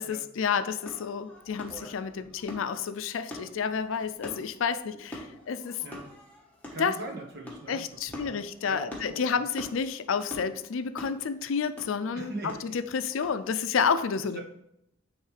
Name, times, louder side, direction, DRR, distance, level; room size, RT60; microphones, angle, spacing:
voice 1, 0.0-5.8 6.8-6.9 7.7-14.4, left 6 dB, 75° left, 11 dB, 0.4 m, -30 dB
sound 1, 0.8-13.5, equal, 10° left, 1.3 m, -45 dB
voice 2, 6.7-9.4 12.1-12.7 14.3-14.4, right 2 dB, 55° right, 0 dB, 1.2 m, -41 dB
8.9 x 3.2 x 3.3 m, 0.80 s
head